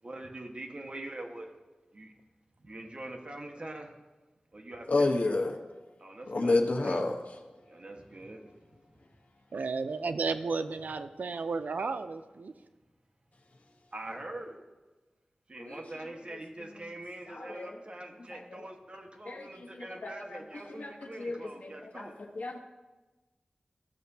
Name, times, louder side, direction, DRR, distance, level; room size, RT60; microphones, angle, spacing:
voice 1, 0.0-1.6 1.9-2.1 2.6-3.9 4.5-5.1 6.0-7.0 7.6-8.7 13.9-14.6 15.5-22.2, right 1 dB, 40° right, 2 dB, 1.4 m, -43 dB
voice 2, 4.9-5.6 6.3-7.1 15.7-15.8 17.3-17.7 18.3-18.6 19.3-19.4 19.8-20.4 20.8-20.9 21.2-22.1 22.4-22.6, left 2 dB, 70° left, 2 dB, 1.1 m, -30 dB
voice 3, 9.5-12.5, right 4 dB, 85° right, 9 dB, 0.5 m, -33 dB
15.0 x 6.6 x 2.8 m, 1.2 s
wide cardioid pair, 65°, 3 cm